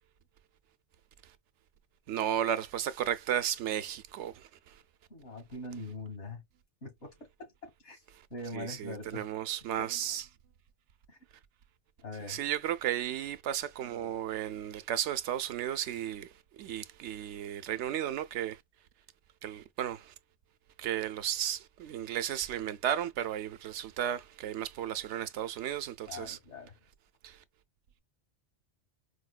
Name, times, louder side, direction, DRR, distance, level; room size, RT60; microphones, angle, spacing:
voice 1, 2.1-4.7 8.5-10.2 12.3-16.3 16.6-18.6 19.4-20.1 20.8-26.4 27.2-27.4, right 10 dB, 85° right, 0.9 m, -34 dB
voice 2, 5.1-6.4 6.8-8.0 8.3-9.3 9.8-9.9 11.1-11.2 12.0-12.4 26.1-26.8, left 2 dB, 80° left, 2.0 m, -43 dB
4.8 x 2.2 x 2.3 m
omnidirectional pair, 1.2 m